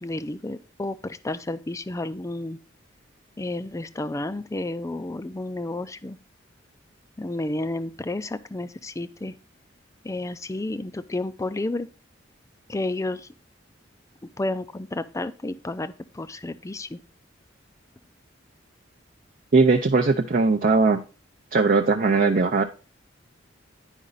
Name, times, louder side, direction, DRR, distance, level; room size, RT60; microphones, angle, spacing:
voice 1, 0.0-2.6 3.4-6.2 7.2-9.3 10.0-11.9 12.7-13.3 14.4-17.0, left 2 dB, 15° left, 12 dB, 0.4 m, -31 dB
voice 2, 19.5-21.0 21.5-22.6, right 3 dB, 45° right, 3 dB, 0.5 m, -19 dB
9.9 x 5.1 x 3.9 m, 0.32 s
head